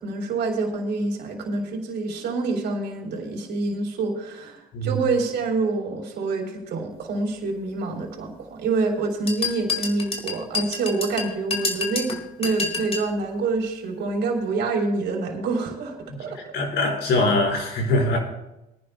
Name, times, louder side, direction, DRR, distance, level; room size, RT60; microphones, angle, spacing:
voice 1, 0.0-12.1 12.4-16.4, right 3 dB, 60° right, 1 dB, 3.6 m, -27 dB
sound 1, 9.3-13.1, left 4 dB, 30° left, 2.1 m, -29 dB
voice 2, 16.5-18.2, left 2 dB, 55° left, -2 dB, 4.5 m, -22 dB
23.0 x 10.5 x 2.3 m, 0.93 s
supercardioid pair, 85°, 21 cm